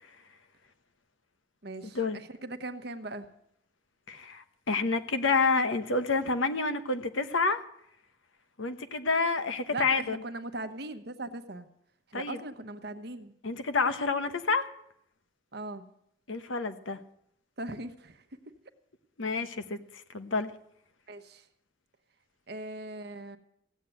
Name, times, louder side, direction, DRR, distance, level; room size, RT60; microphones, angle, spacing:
voice 1, 1.6-3.3 9.7-11.7 12.1-13.3 15.5-15.9 17.6-18.5 21.1-21.4 22.5-23.4, right 2 dB, 55° right, 8 dB, 1.1 m, -39 dB
voice 2, 4.1-7.6 8.6-10.2 12.1-12.4 13.4-14.7 16.3-17.0 19.2-19.8 20.1-20.5, left 4 dB, 80° left, 10 dB, 1.1 m, -28 dB
15.5 x 8.5 x 9.3 m, 0.72 s
head